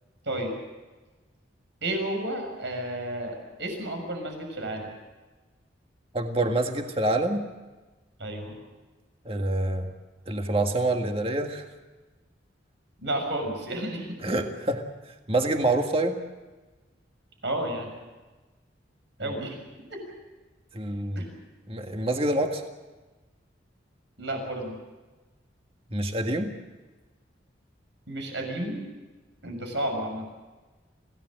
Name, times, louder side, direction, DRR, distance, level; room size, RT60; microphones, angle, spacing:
voice 1, 1.8-4.9 8.2-8.5 13.0-14.2 17.4-17.9 19.2-19.6 19.9-20.0 21.1-21.3 24.2-24.8 28.1-28.8 29.4-30.3, right 1 dB, 75° right, 3 dB, 6.5 m, -31 dB
voice 2, 6.1-7.5 9.3-9.9 10.3-11.6 14.2-14.8 15.3-16.2 20.7-21.2 21.7-22.6 25.9-26.5, right 2 dB, 30° right, 4 dB, 1.8 m, -26 dB
26.5 x 17.5 x 7.7 m, 1.2 s
head